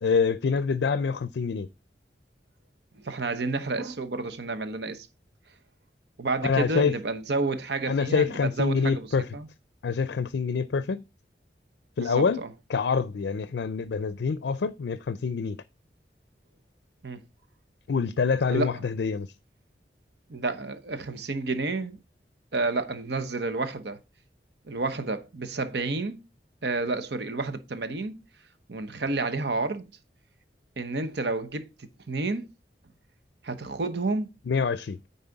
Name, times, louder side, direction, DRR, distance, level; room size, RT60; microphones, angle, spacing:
voice 1, 0.0-1.7 6.4-6.9 7.9-9.3 9.8-11.0 12.0-12.4 12.7-15.6 17.9-19.3 34.5-35.0, left 5 dB, 80° left, 0.4 m, -26 dB
voice 2, 2.9-5.1 6.2-9.1 9.3-9.5 12.0-12.5 17.0-17.2 18.5-18.9 20.3-22.0 22.5-24.0 24.7-26.2 26.6-28.2 28.7-29.9 30.8-32.5 33.4-34.3, right 3 dB, 70° right, 1.0 m, -30 dB
9.5 x 4.1 x 3.9 m
head